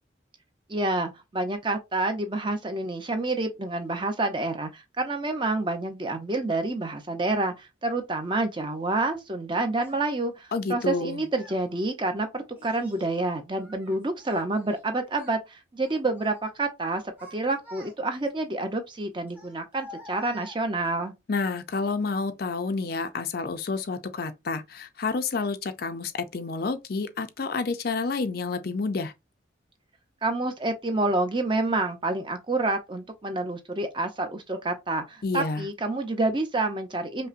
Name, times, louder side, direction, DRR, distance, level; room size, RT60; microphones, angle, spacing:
voice 1, 0.7-17.0 17.3-21.1 30.2-37.3, right 2 dB, 25° right, 0.6 m, -28 dB
Child speech kid speaking, 9.8-10.0 10.9-11.6 12.6-13.2 13.6-14.8 15.1-15.4 15.8-16.4 16.9-18.3 19.3-21.0, left 1 dB, 10° right, 0.9 m, -47 dB
voice 2, 10.5-11.2 21.3-29.1 35.2-35.6, left 4 dB, 50° left, 0.4 m, -29 dB
5.4 x 2.1 x 2.5 m
head